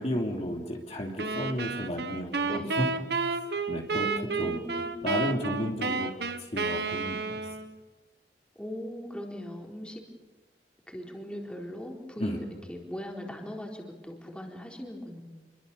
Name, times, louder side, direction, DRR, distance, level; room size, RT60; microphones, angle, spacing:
voice 1, 0.0-2.9 3.7-4.1 4.4-4.6 5.0-6.1 6.5-7.4 12.2-12.4, equal, 40° left, 0 dB, 2.9 m, -32 dB
sound 1, 1.2-7.8, right 3 dB, 65° right, 1.5 m, -31 dB
voice 2, 2.4-3.0 3.9-4.9 8.6-10.0 10.9-12.3 12.7-15.2, equal, 5° left, 0 dB, 4.0 m, -39 dB
29.0 x 23.0 x 6.9 m, 1.2 s
head